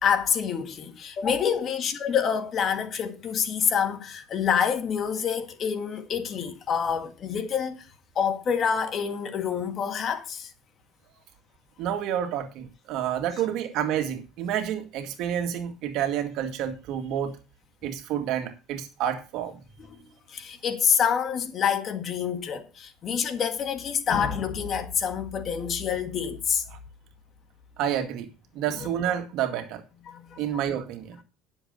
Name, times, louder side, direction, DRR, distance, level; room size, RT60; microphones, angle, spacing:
voice 1, 0.0-7.9 8.1-10.5 19.9-20.0 20.3-26.6 30.1-30.4, left 7 dB, 40° left, 1.6 m, -27 dB
voice 2, 11.8-17.4 17.8-19.6 26.7-26.8 27.8-29.8 30.4-31.2, right 10 dB, 65° right, 2.0 m, -29 dB
10.5 x 7.2 x 5.2 m
cardioid pair, 135°, 0 cm